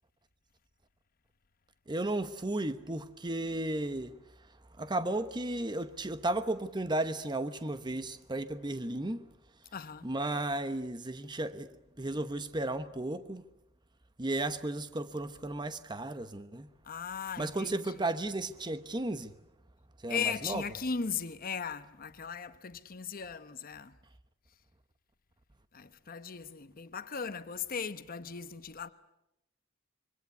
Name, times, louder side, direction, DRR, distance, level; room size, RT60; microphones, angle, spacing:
voice 1, 1.9-4.2 4.8-9.3 10.0-11.7 12.0-13.4 14.2-16.7 17.4-19.3 20.0-20.6, right 2 dB, 20° right, 1.0 m, -34 dB
voice 2, 9.7-10.1 16.8-17.8 20.1-23.9 25.7-28.9, left 6 dB, 45° left, 0.9 m, -37 dB
26.0 x 24.5 x 8.3 m
head